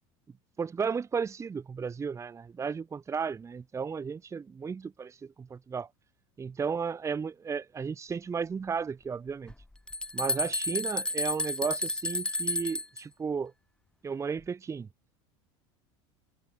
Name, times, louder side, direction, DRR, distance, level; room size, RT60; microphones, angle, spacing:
voice 1, 0.6-5.9 6.4-9.5 10.1-13.5 14.0-14.9, right 6 dB, 20° right, 1.3 m, -34 dB
sound 1, 9.5-13.0, left 2 dB, 5° left, 0.7 m, -31 dB
supercardioid pair, 120°, 14 cm